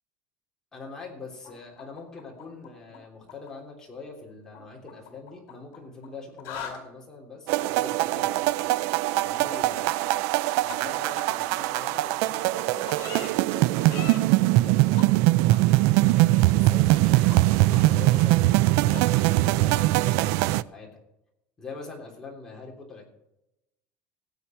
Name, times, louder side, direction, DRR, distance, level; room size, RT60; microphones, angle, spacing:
voice 1, 0.7-8.7 9.2-10.2 10.6-15.1 15.5-20.9 21.6-23.1, left 3 dB, 10° left, -2 dB, 3.4 m, -43 dB
sound 1, 1.4-3.0 3.2-3.5 4.5-6.1 6.3-6.8 9.5-9.6 10.1-10.2 10.7-10.8 11.1-11.2 11.7-11.8 12.2-12.3 12.9-13.3 13.8-14.2 15.0-15.1 15.5-15.6 16.0-16.1 16.5-17.0 17.3-17.4 17.7-17.8 18.2-18.3 18.5-18.6 18.9-19.0, left 8 dB, 50° left, 4.2 m, -40 dB
sound 2, 7.5-20.6, right 18 dB, 65° right, 0.4 m, -22 dB
16.0 x 8.8 x 4.5 m, 0.87 s
cardioid pair, 165°, 6 cm